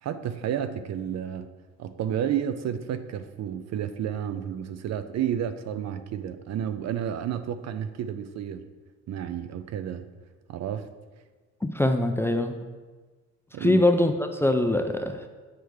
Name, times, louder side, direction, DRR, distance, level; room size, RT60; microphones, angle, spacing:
voice 1, 0.0-1.5 1.8-8.7 9.1-10.1 10.5-10.9 13.5-13.8, right 9 dB, 60° right, 10 dB, 0.5 m, -31 dB
voice 2, 11.6-12.6 13.6-15.3, left 1 dB, 10° left, 5 dB, 0.4 m, -23 dB
7.7 x 4.8 x 3.4 m, 1.3 s
cardioid pair, 90°, 30 cm